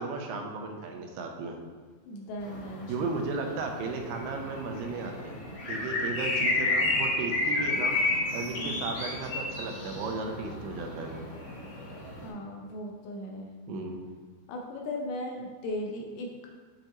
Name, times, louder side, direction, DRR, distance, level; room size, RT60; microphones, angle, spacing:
voice 1, 0.0-1.6 2.9-5.4 5.7-8.0 8.3-11.3 13.7-14.0, right 3 dB, 80° right, 3 dB, 2.4 m, -35 dB
voice 2, 2.1-3.2 8.4-8.8 12.2-13.5 14.5-16.3, left 1 dB, 80° left, 0 dB, 2.7 m, -37 dB
sound 1, 2.4-12.3, left 2 dB, 55° left, 3.2 m, -32 dB
7.2 x 5.4 x 2.9 m, 1.5 s
omnidirectional pair, 5.2 m